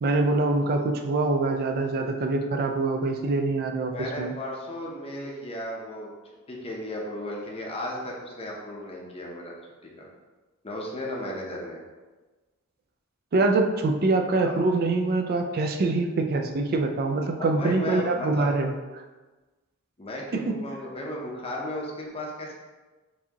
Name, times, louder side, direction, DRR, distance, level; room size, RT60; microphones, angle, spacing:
voice 1, 0.0-4.3 13.3-18.7 20.3-20.5, right 3 dB, 45° right, 5 dB, 0.4 m, -24 dB
voice 2, 3.9-6.1 6.5-9.5 9.8-10.1 10.6-11.8 14.4-14.6 17.4-18.5 20.0-22.5, left 1 dB, 25° left, -2 dB, 0.6 m, -35 dB
4.6 x 2.7 x 2.8 m, 1.2 s
head